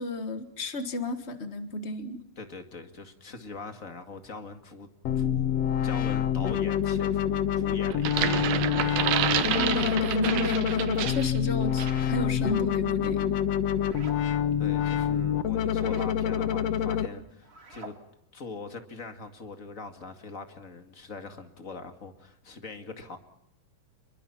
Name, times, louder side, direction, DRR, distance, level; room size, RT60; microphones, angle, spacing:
voice 1, 0.0-2.2 9.3-13.3, left 1 dB, 85° left, 0.5 m, -32 dB
voice 2, 2.4-4.9 5.1-8.6 14.0-17.9 18.3-23.2, left 3 dB, 30° left, 2.0 m, -42 dB
sound 1, 5.0-17.1, left 9 dB, 65° left, 1.9 m, -27 dB
sound 2, 7.9-11.4 11.8-12.0, right 11 dB, 85° right, 3.0 m, -29 dB
sound 3, 9.1-10.0 11.6-12.2 13.7-14.2 15.7-16.1 17.4-18.0, right 3 dB, 20° right, 1.9 m, -46 dB
29.5 x 22.5 x 5.9 m
omnidirectional pair, 3.9 m